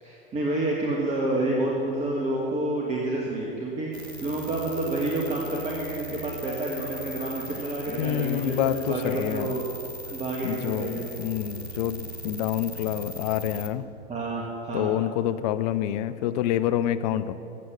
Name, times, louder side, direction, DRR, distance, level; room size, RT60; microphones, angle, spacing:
voice 1, 0.0-9.7 10.1-11.2 14.1-15.0 17.1-17.2, right 2 dB, 20° right, -3 dB, 1.5 m, -29 dB
sound 1, 3.9-13.7, right 1 dB, 85° right, 1.0 m, -39 dB
voice 2, 8.0-9.5 10.4-13.8 14.7-17.3, left 11 dB, 40° left, 12 dB, 0.6 m, -27 dB
14.5 x 7.8 x 6.7 m, 2.9 s
figure-of-eight pair, 95°, 31 cm